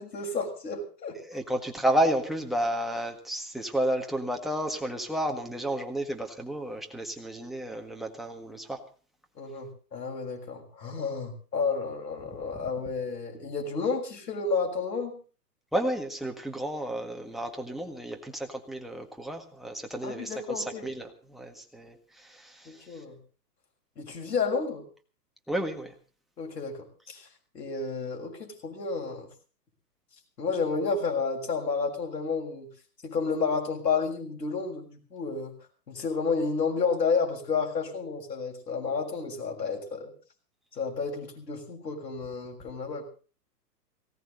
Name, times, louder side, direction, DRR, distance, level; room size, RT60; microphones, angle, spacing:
voice 1, 0.0-1.2 9.3-15.2 20.0-20.9 22.6-23.2 24.0-24.8 26.4-27.3 27.5-29.3 30.4-32.7 33.0-35.5 35.9-40.1 40.7-43.1, left 4 dB, 80° left, 2 dB, 6.6 m, -31 dB
voice 2, 1.2-8.8 15.7-23.0 25.5-25.9, right 1 dB, ahead, 5 dB, 1.7 m, -31 dB
19.0 x 17.0 x 4.0 m, 0.36 s
hypercardioid pair, 130°, 49 cm